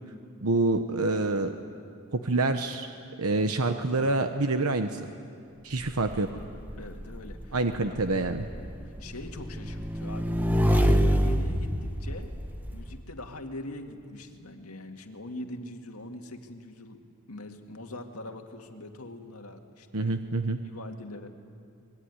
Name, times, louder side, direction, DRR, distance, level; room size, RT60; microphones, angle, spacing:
voice 1, 0.4-1.5 2.1-2.9 3.2-5.1 5.6-6.3 7.5-8.5 19.9-20.6, right 2 dB, 80° right, 7 dB, 1.0 m, -27 dB
Motorcycle / Engine, 5.8-12.9, equal, 10° right, 1.1 m, -27 dB
voice 2, 6.8-7.6 7.8-8.0 9.0-10.3 10.6-12.3 12.7-17.0 17.3-20.2 20.6-21.3, left 1 dB, 80° left, 3 dB, 2.1 m, -42 dB
24.5 x 22.0 x 9.8 m, 2.4 s
head